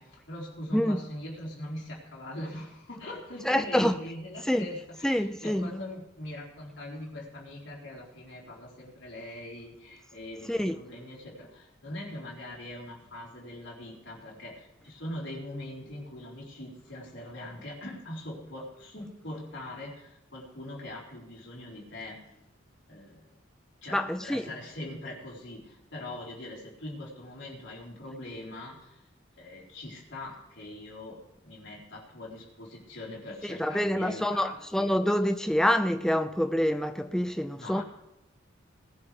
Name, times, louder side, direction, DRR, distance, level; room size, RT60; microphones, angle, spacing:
voice 1, 0.0-22.4 22.9-23.3 23.8-29.0 29.4-34.9 37.6-37.8, left 1 dB, 65° left, 4.1 m, -42 dB
voice 2, 3.5-3.9 4.5-4.7 5.0-5.7 10.5-10.7 23.9-24.5 33.4-37.8, equal, 5° left, 0.5 m, -26 dB
19.5 x 11.0 x 3.4 m
head